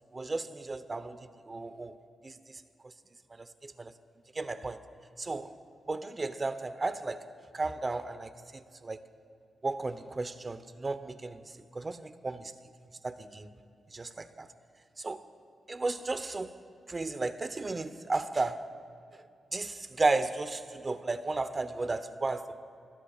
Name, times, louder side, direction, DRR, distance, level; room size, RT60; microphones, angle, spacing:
voice 1, 0.1-1.9 2.2-2.3 3.4-3.9 4.3-4.8 5.2-5.5 5.9-9.1 9.6-11.4 11.7-12.5 13.0-13.5 13.9-14.5 15.0-15.2 15.7-16.5 16.9-18.8 19.5-22.6, right 3 dB, 35° right, 0.9 m, -34 dB
27.0 x 20.5 x 2.5 m
supercardioid pair, 50°, 0 cm